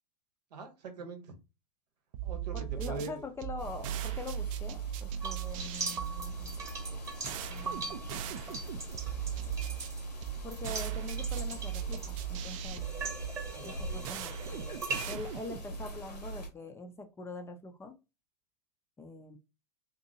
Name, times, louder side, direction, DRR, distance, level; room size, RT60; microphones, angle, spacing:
voice 1, 0.5-1.3 2.2-3.2 13.5-14.0, right 3 dB, 75° right, 6 dB, 0.9 m, -42 dB
sound 1, 2.1-15.7, right 12 dB, 50° right, 0.4 m, -39 dB
voice 2, 2.5-6.5 7.5-8.5 10.4-12.8 13.6-17.9 19.0-19.4, left 2 dB, 10° left, 5 dB, 0.4 m, -44 dB
sound 2, 3.6-16.5, right 1 dB, 90° left, 1.1 m, -43 dB
sound 3, 5.2-12.3 12.8-15.1, right 3 dB, 15° right, 1.0 m, -41 dB
2.7 x 2.6 x 2.6 m, 0.27 s
hypercardioid pair, 105°, 21 cm